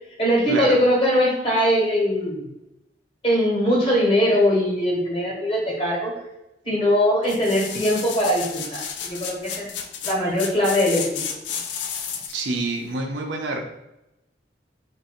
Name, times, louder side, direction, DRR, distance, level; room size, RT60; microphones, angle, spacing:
voice 1, 0.2-2.5 3.2-6.1 6.6-9.7 10.0-11.0, equal, 30° left, -4 dB, 1.3 m, -21 dB
sound 1, 7.2-12.5 12.9-13.0, left 7 dB, 75° left, 0.4 m, -32 dB
voice 2, 12.3-13.6, right 2 dB, 80° right, 2 dB, 0.6 m, -27 dB
2.9 x 2.6 x 4.3 m, 0.90 s
head